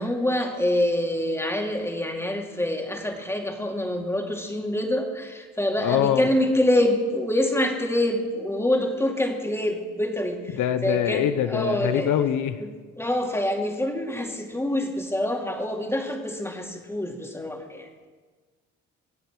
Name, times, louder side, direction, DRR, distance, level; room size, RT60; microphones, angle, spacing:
voice 1, 0.0-12.2 12.6-12.7 13.0-18.1, left 1 dB, 10° left, 2 dB, 2.4 m, -26 dB
voice 2, 5.8-6.2 10.6-12.6, left 10 dB, 80° left, 11 dB, 0.8 m, -24 dB
24.5 x 8.2 x 6.2 m, 1.5 s
cardioid pair, 90°, 30 cm